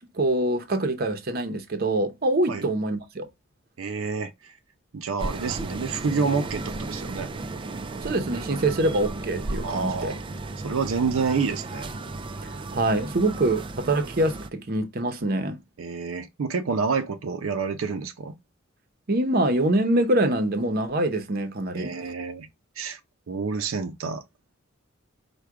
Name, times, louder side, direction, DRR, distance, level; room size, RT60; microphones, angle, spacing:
voice 1, 0.1-3.2 8.0-10.1 12.7-15.6 19.1-22.0, right 1 dB, 50° right, 0.7 m, -24 dB
voice 2, 3.8-4.3 4.9-7.3 9.6-10.2 10.6-11.9 15.8-18.4 21.7-22.5 22.8-23.0 23.3-24.2, right 5 dB, 85° right, 0.5 m, -28 dB
sound 1, 5.2-14.5, right 2 dB, 25° right, 0.3 m, -34 dB
4.8 x 2.2 x 4.5 m
head